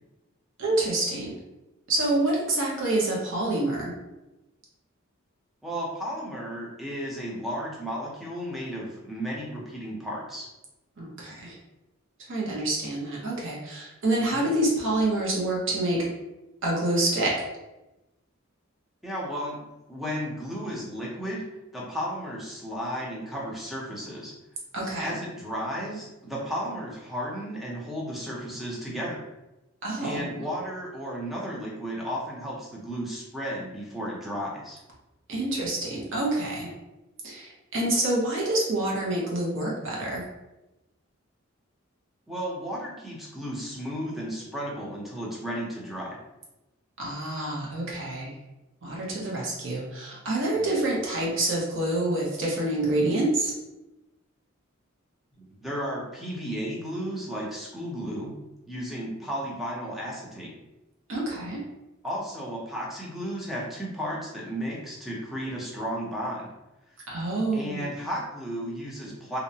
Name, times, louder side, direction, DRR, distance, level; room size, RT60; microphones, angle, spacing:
voice 1, 0.6-1.3 1.9-3.9 11.0-11.6 12.3-16.1 16.6-17.5 24.7-25.2 29.8-30.3 35.3-36.7 37.2-40.3 47.0-48.3 48.8-53.5 61.1-61.6 67.1-67.9, right 2 dB, 60° right, -4 dB, 0.7 m, -27 dB
voice 2, 5.6-10.5 14.3-14.5 19.0-19.6 19.9-24.3 25.0-29.3 30.0-34.8 42.3-46.2 50.5-50.7 55.6-58.3 58.7-60.5 62.0-66.5 67.5-69.4, equal, ahead, -4 dB, 0.5 m, -34 dB
2.7 x 2.0 x 2.7 m, 1.0 s
head